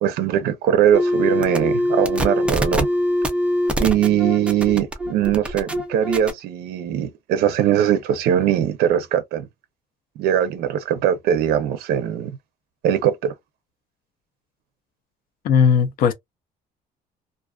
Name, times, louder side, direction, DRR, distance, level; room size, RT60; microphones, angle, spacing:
voice 1, 0.0-2.9 3.8-9.5 10.2-12.3 12.8-13.3, right 10 dB, 85° right, 0.5 m, -21 dB
sound 1, 0.9-6.3, equal, 5° right, 0.4 m, -23 dB
voice 2, 15.4-16.1, left 6 dB, 65° left, 0.5 m, -17 dB
2.4 x 2.3 x 2.2 m
cardioid pair, 160°, 16 cm